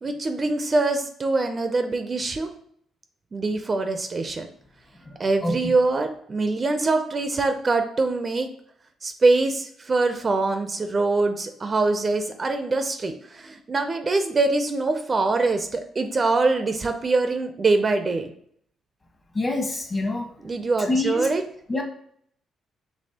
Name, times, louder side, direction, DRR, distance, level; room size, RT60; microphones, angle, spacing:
voice 1, 0.0-2.5 3.3-4.5 5.2-8.5 9.0-18.3 20.4-21.4, right 3 dB, 35° right, 7 dB, 0.4 m, -23 dB
voice 2, 5.0-5.7 19.3-20.3 20.8-21.3 21.7-21.8, left 2 dB, 30° left, 1 dB, 1.1 m, -26 dB
5.3 x 3.0 x 2.8 m, 0.66 s
cardioid pair, 90°, 0 cm